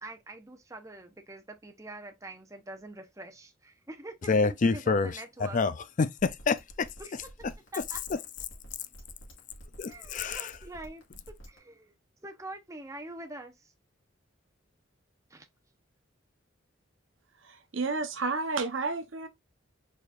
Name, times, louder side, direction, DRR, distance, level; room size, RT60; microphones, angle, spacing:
voice 1, 0.0-5.6 7.0-7.5 7.7-8.0 9.9-11.9 12.2-13.7 15.3-15.5, right 2 dB, 15° right, 0.8 m, -45 dB
voice 2, 4.3-6.9 9.8-10.5, left 4 dB, 40° left, 0.4 m, -27 dB
sound 1, 6.2-11.6, right 1 dB, 75° left, 2.0 m, -49 dB
voice 3, 17.5-19.3, right 3 dB, 75° right, 0.9 m, -31 dB
4.8 x 4.2 x 2.4 m
head